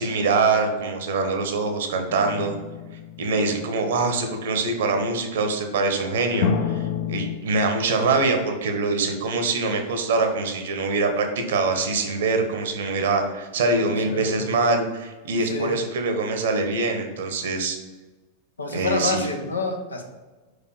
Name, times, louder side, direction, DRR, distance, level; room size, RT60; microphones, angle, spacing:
voice 1, 0.0-2.5 3.2-6.8 7.1-17.8 18.7-19.2, right 3 dB, 60° right, 5 dB, 1.0 m, -24 dB
sound 1, 2.1-3.9 6.4-7.4, left 6 dB, 45° left, 0.7 m, -28 dB
voice 2, 14.0-14.5 15.4-15.8 18.6-20.0, left 3 dB, 75° left, 3 dB, 0.9 m, -28 dB
5.0 x 4.9 x 4.1 m, 1.3 s
figure-of-eight pair, 90°, 0 cm